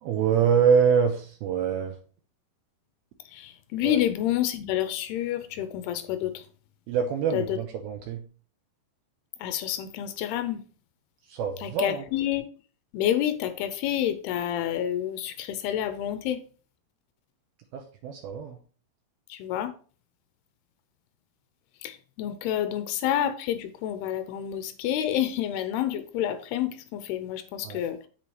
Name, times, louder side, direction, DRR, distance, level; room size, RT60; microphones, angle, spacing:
voice 1, 0.0-2.0 3.8-4.0 6.9-8.2 11.3-12.0 17.7-18.6 27.6-27.8, right 7 dB, 75° right, 3 dB, 2.5 m, -25 dB
voice 2, 3.3-6.5 7.3-7.6 9.4-10.6 11.6-12.5 12.9-16.4 19.3-19.7 21.8-28.1, left 11 dB, 85° left, 10 dB, 2.6 m, -29 dB
7.5 x 6.9 x 3.1 m, 0.40 s
omnidirectional pair, 4.7 m